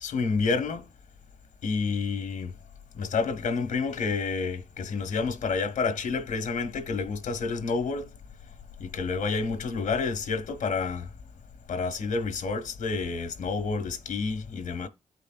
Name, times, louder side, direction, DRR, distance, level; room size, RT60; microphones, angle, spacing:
voice 1, 0.0-0.9 1.6-2.6 2.9-8.1 8.8-11.1 11.7-14.9, left 4 dB, 85° left, 1.5 m, -29 dB
15.5 x 5.1 x 2.3 m
cardioid pair, 65°, 13 cm